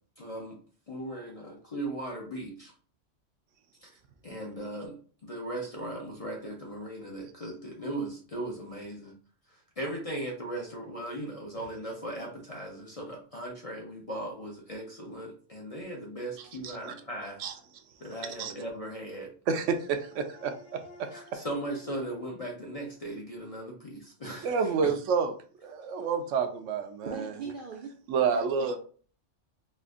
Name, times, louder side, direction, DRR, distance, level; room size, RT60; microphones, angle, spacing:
voice 1, 0.2-0.6 0.9-2.7 3.8-3.9 4.2-9.2 9.5-17.4 18.0-19.3 21.1-24.9, right 1 dB, 40° left, -1 dB, 0.5 m, -38 dB
voice 2, 16.6-16.9 17.4-17.5 18.4-18.5 19.5-20.5 21.0-21.4 24.4-25.3 25.6-27.3 28.1-28.8, right 6 dB, 80° right, 7 dB, 0.9 m, -29 dB
sound 1, 19.5-23.8, left 2 dB, 75° left, 1.2 m, -55 dB
voice 3, 27.1-27.9 28.3-28.8, right 5 dB, 60° right, 2 dB, 0.5 m, -39 dB
4.2 x 2.4 x 2.4 m, 0.42 s
omnidirectional pair, 1.3 m